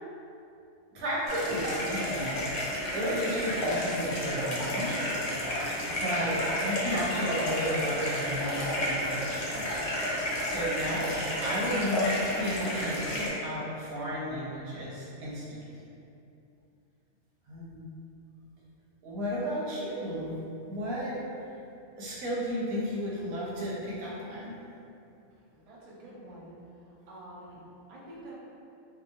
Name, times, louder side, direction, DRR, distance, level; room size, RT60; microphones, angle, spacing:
voice 1, 0.9-2.7 2.9-5.0 6.0-9.7 10.4-15.6 17.5-17.8 19.0-20.3 20.7-21.2 22.0-24.5, equal, 80° right, -6 dB, 1.2 m, -33 dB
sound 1, 1.3-13.3, left 1 dB, 60° left, 0.5 m, -31 dB
voice 2, 25.5-26.5 27.1-27.6 27.9-28.3, right 1 dB, 55° right, -7 dB, 0.4 m, -47 dB
2.9 x 2.3 x 2.5 m, 2.7 s
omnidirectional pair, 1.4 m